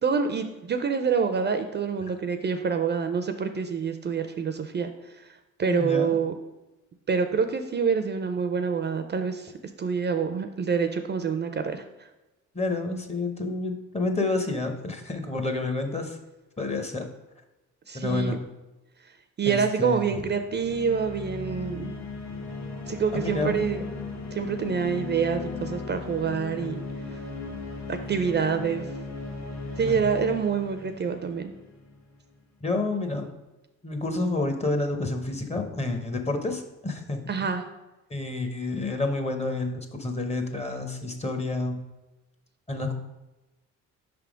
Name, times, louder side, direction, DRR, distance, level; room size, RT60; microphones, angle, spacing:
voice 1, 0.0-5.3 5.6-6.3 7.1-9.5 9.8-12.1 17.9-18.4 19.4-22.0 22.9-23.9 24.3-26.8 27.9-28.9 29.8-31.5 37.3-37.6, right 6 dB, 35° right, 8 dB, 0.5 m, -27 dB
voice 2, 5.7-6.1 12.5-16.2 16.6-17.1 17.9-18.4 19.4-20.2 23.1-23.5 29.9-30.0 32.6-33.3 33.8-37.5 38.1-41.8 42.7-42.9, left 2 dB, 20° left, 5 dB, 0.8 m, -29 dB
sound 1, 20.5-32.0, left 3 dB, 65° left, 1.3 m, -37 dB
5.5 x 3.4 x 5.0 m, 1.0 s
cardioid pair, 90°, 30 cm